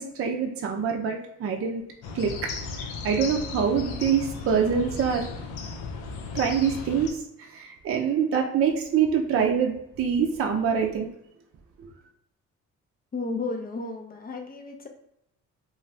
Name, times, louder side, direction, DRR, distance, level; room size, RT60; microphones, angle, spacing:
voice 1, 0.0-1.8 2.1-2.5 2.8-5.2 6.3-11.1 11.8-11.9, right 7 dB, 50° right, 2 dB, 0.5 m, -25 dB
sound 1, 2.0-7.1, left 4 dB, 90° left, 0.5 m, -36 dB
voice 2, 13.1-14.9, left 3 dB, 30° left, 4 dB, 0.5 m, -33 dB
2.6 x 2.2 x 3.2 m, 0.78 s
cardioid pair, 90°, 30 cm